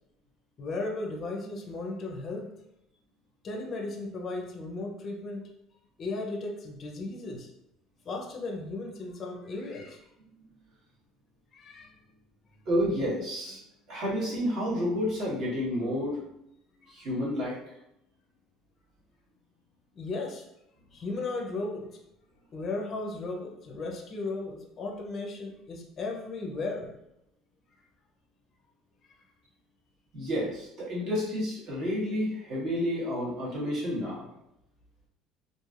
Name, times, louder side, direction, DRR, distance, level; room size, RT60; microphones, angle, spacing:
voice 1, 0.6-2.5 3.4-5.4 6.0-7.5 8.0-10.0 11.5-11.9 16.9-17.0 20.0-20.5 20.9-21.9 22.5-26.9, left 2 dB, 30° left, 1 dB, 0.5 m, -35 dB
voice 2, 12.6-13.6 13.9-16.5 16.9-17.6 30.1-34.3, equal, 45° right, -6 dB, 1.2 m, -30 dB
3.2 x 2.5 x 2.4 m, 0.81 s
cardioid pair, 170°, 0 cm